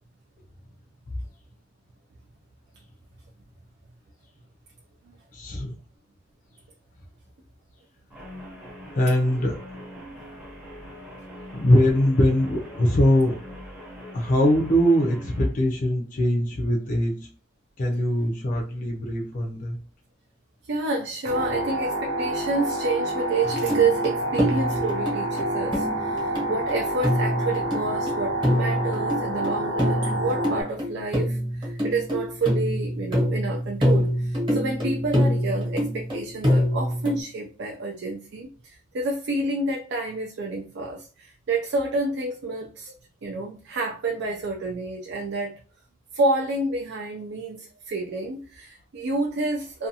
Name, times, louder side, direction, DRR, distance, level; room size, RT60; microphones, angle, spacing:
voice 1, 5.3-5.8 8.9-9.6 11.5-13.4 14.1-17.3 17.8-19.8, equal, 40° left, 0.5 m, -22 dB
Guitar, 8.1-15.5, equal, 5° right, 0.7 m, -42 dB
voice 2, 20.7-42.9 43.2-45.6 46.1-49.9, right 3 dB, 60° right, 0.4 m, -29 dB
sound 1, 21.3-30.6, right 1 dB, 90° right, 0.9 m, -28 dB
sound 2, 23.4-37.2, equal, 25° right, 1.0 m, -26 dB
2.5 x 2.3 x 2.7 m
head